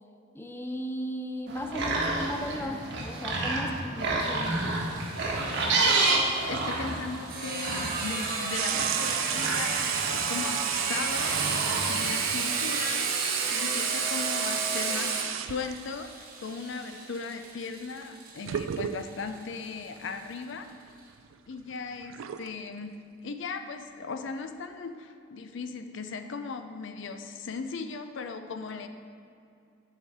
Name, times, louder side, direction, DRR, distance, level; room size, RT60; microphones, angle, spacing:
voice 1, 0.3-4.7, equal, 10° left, 4 dB, 0.4 m, -36 dB
sound 1, 1.5-12.3, right 3 dB, 65° right, 1.3 m, -30 dB
Sawing, 4.2-19.6, right 4 dB, 50° right, 1.0 m, -32 dB
voice 2, 5.8-20.7 21.5-22.9 23.2-28.9, left 4 dB, 65° left, 8 dB, 0.5 m, -38 dB
sound 2, 8.5-15.9 18.0-18.1 18.5-19.3 20.0-20.1 20.5-22.5, right 11 dB, 80° right, 0.3 m, -34 dB
10.0 x 4.9 x 4.1 m, 2.5 s
head